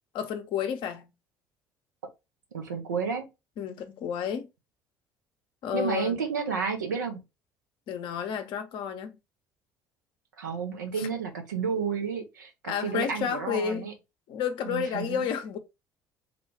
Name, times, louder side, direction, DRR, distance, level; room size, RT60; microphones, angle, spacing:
voice 1, 0.1-1.1 3.6-4.5 5.6-6.2 7.9-9.2 11.0-11.1 12.6-13.9 14.3-15.6, left 8 dB, 55° left, 0.7 m, -31 dB
voice 2, 2.5-3.3 5.7-7.2 10.4-13.9 14.6-15.2, right 6 dB, 85° right, 0.7 m, -31 dB
3.6 x 2.3 x 3.3 m
figure-of-eight pair, 55°, 10 cm